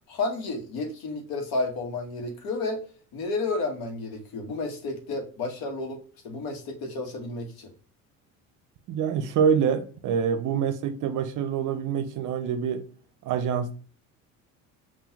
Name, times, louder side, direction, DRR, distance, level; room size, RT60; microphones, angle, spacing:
voice 1, 0.1-2.9 3.1-6.0 6.2-7.7, left 3 dB, 60° left, 1.3 m, -31 dB
voice 2, 8.9-12.9 13.2-13.7, right 7 dB, 50° right, 0.6 m, -26 dB
5.4 x 2.6 x 2.8 m
hypercardioid pair, 65°, 41 cm